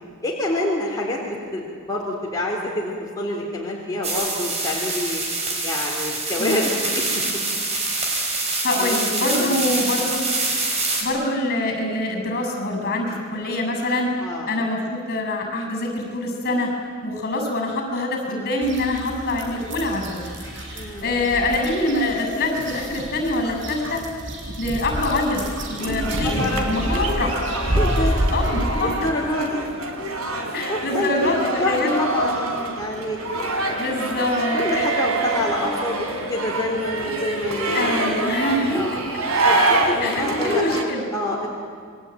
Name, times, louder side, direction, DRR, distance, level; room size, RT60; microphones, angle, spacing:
voice 1, 0.2-5.2 5.6-7.2 8.8-9.0 9.4-9.7 13.1-13.2 14.2-14.5 20.8-21.3 26.2-27.1 27.7-28.2 28.8-29.7 30.7-33.2 33.6-33.8 34.5-37.8 38.7-39.0 39.4-40.8 41.1-41.5, left 1 dB, 20° left, -4 dB, 3.6 m, -27 dB
sound 1, 4.0-11.0, right 2 dB, 30° right, 5.7 m, -25 dB
voice 2, 8.6-10.3 11.0-14.1 14.5-16.7 17.0-20.2 21.0-24.0 24.6-27.3 28.3-28.9 30.5-32.0 33.8-34.6 37.7-38.8 40.0-41.1, left 2 dB, 45° left, 4 dB, 7.0 m, -24 dB
sound 2, 18.6-28.8, equal, 60° right, 5.5 m, -29 dB
sound 3, 25.8-40.8, right 2 dB, 90° right, 3.4 m, -26 dB
28.5 x 22.5 x 9.2 m, 2.2 s
head